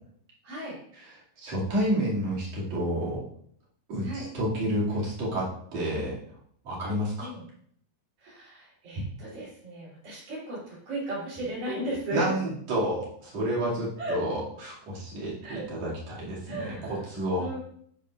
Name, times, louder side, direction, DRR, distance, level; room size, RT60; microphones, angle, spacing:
voice 1, 0.4-0.8 4.0-4.3 7.2-7.4 8.2-12.3 14.0-14.2 15.4-15.7 16.5-17.1 17.4-17.6, right 1 dB, 65° right, -6 dB, 4.9 m, -35 dB
voice 2, 1.4-3.2 3.9-6.1 6.7-7.3 12.1-17.5, equal, 50° right, -7 dB, 3.5 m, -30 dB
13.5 x 5.5 x 2.5 m, 0.63 s
omnidirectional pair, 4.1 m